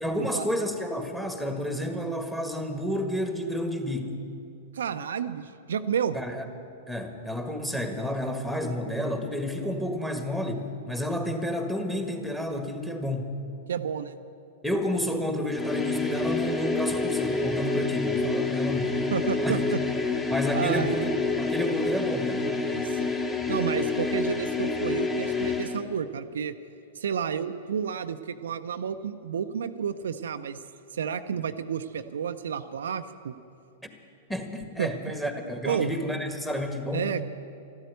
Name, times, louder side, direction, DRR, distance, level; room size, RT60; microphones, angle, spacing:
voice 1, 0.0-4.2 6.1-6.5 6.9-13.3 14.6-19.0 19.4-19.6 20.3-22.5 34.3-37.2, equal, 5° left, 6 dB, 1.7 m, -30 dB
voice 2, 4.7-6.2 13.7-14.2 19.1-19.8 20.5-21.0 22.7-23.1 23.5-26.5 27.0-30.6 30.9-33.3 34.8-34.9 35.6-35.9 36.9-37.2, right 7 dB, 70° right, 8 dB, 0.6 m, -31 dB
sound 1, 15.5-25.8, left 3 dB, 20° left, 1.8 m, -28 dB
13.0 x 12.5 x 8.2 m, 2.6 s
hypercardioid pair, 105°, 0 cm